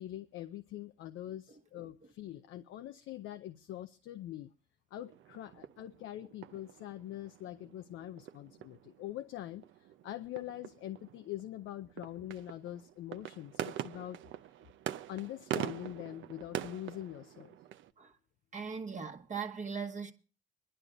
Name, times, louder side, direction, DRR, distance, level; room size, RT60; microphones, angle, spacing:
voice 1, 0.0-4.5 4.9-14.2 15.1-17.6, left 13 dB, 85° left, 0.6 m, -44 dB
sound 1, 5.0-17.9, right 12 dB, 75° right, 0.6 m, -44 dB
voice 2, 18.5-20.1, right 5 dB, 40° right, 1.1 m, -39 dB
24.5 x 11.0 x 2.5 m
cardioid pair, 90°, 20 cm